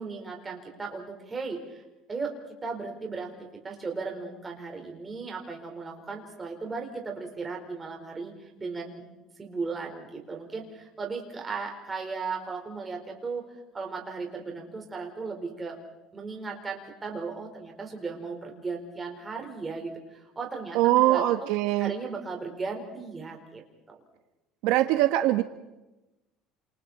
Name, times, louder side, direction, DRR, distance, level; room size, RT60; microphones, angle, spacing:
voice 1, 0.0-1.8 2.1-8.3 8.6-9.0 9.4-13.4 13.7-15.8 16.1-21.3 21.8-24.0, right 4 dB, 15° right, 1 dB, 4.5 m, -36 dB
voice 2, 20.7-21.9 24.6-25.4, right 15 dB, 75° right, 8 dB, 1.4 m, -22 dB
29.0 x 28.0 x 4.4 m, 0.99 s
cardioid pair, 165°, 0 cm